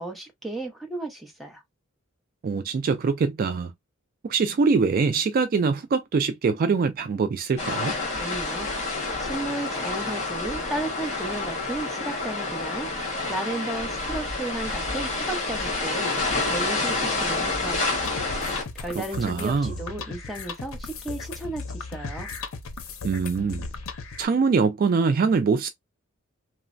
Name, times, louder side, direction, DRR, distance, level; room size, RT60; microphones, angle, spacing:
voice 1, 0.0-1.6 8.2-12.9 13.3-18.1 18.7-22.3, right 2 dB, ahead, 0.7 m, -34 dB
voice 2, 2.4-3.7 4.2-7.9 19.2-19.7 23.0-23.7 24.2-25.7, right 5 dB, 45° right, 0.3 m, -23 dB
sound 1, 7.6-18.6, left 3 dB, 35° left, 1.3 m, -28 dB
sound 2, 18.0-24.3, left 4 dB, 75° left, 0.6 m, -36 dB
3.1 x 2.0 x 2.5 m
head